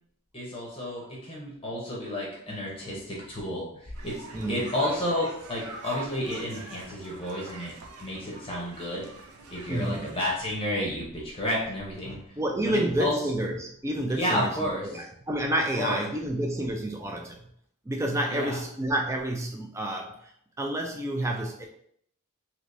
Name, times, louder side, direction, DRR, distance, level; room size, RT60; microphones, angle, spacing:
voice 1, 0.3-4.2 4.5-7.7 8.0-9.1 9.5-12.2 12.6-13.2 14.1-14.9 15.8-16.0 18.3-18.6, left 1 dB, 25° left, -3 dB, 0.7 m, -31 dB
sound 1, 3.9-10.2, right 3 dB, 85° right, 0.6 m, -44 dB
voice 2, 4.3-4.7 9.7-10.1 12.4-17.4 17.9-20.3 20.6-21.7, right 1 dB, 15° right, 2 dB, 0.3 m, -29 dB
3.3 x 3.0 x 2.6 m, 0.68 s
head